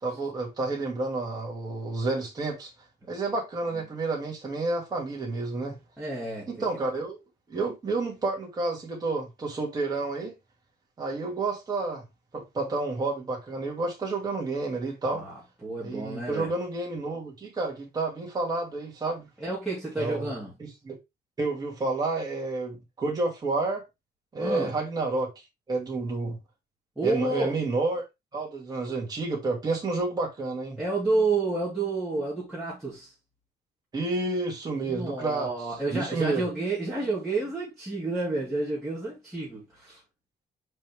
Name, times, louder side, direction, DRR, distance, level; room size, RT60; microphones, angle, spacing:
voice 1, 0.0-2.7 3.1-5.8 6.5-7.2 7.5-10.3 11.0-12.0 12.3-15.2 15.8-19.3 20.0-20.3 20.6-21.0 21.4-23.8 24.3-25.3 25.7-26.4 27.0-28.0 28.3-30.8 33.9-35.5 35.9-36.4, right 3 dB, 25° right, 2.5 m, -30 dB
voice 2, 6.0-6.5 15.1-16.5 19.4-20.5 24.4-24.7 27.0-27.6 30.8-33.1 34.8-40.0, right 3 dB, ahead, 2.8 m, -30 dB
5.5 x 5.2 x 3.5 m
cardioid pair, 170°, 17 cm